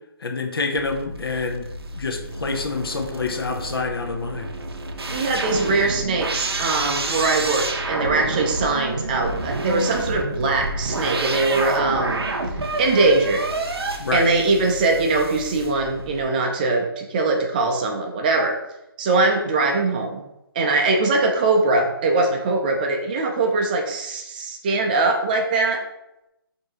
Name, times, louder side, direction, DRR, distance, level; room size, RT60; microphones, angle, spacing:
voice 1, 0.2-1.7 2.0-4.5 14.0-14.3, left 4 dB, 70° left, 4 dB, 0.7 m, -27 dB
sound 1, 0.7-16.2, right 2 dB, 90° right, 0.6 m, -29 dB
voice 2, 5.1-12.3 12.8-13.4 14.1-18.6 19.0-20.2 20.5-25.8, right 3 dB, 20° right, 2 dB, 0.4 m, -21 dB
4.5 x 2.7 x 2.8 m, 0.87 s
hypercardioid pair, 155°, 13 cm